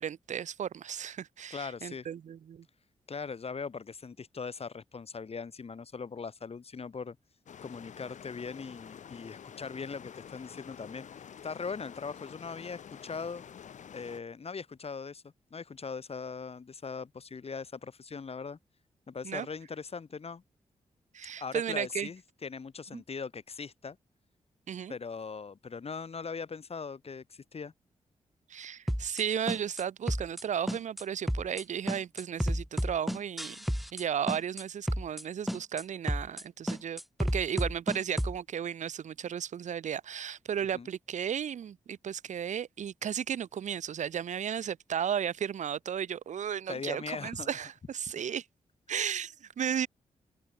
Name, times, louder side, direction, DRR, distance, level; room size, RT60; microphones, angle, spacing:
voice 1, 0.0-2.6 19.2-19.5 21.1-22.1 22.9-23.0 24.7-24.9 28.5-33.6 33.9-48.4 48.9-49.9, right 8 dB, 75° right, 1.4 m, -34 dB
voice 2, 1.5-2.1 3.1-7.2 7.6-13.5 13.9-18.6 19.1-20.4 21.4-24.0 24.9-27.7 40.7-40.9 46.7-47.6, left 5 dB, 50° left, 3.9 m, -40 dB
sound 1, 7.5-14.2, left 8 dB, 75° left, 4.5 m, -49 dB
sound 2, 28.9-29.2 29.5-29.8 30.1-30.4 30.7-31.0 31.3-31.6 31.9-34.0 34.3-34.6 34.9-35.2 35.5-35.8 36.1-36.4 36.7-38.4, equal, ahead, 3.2 m, -31 dB
open air
supercardioid pair, 50°, 13 cm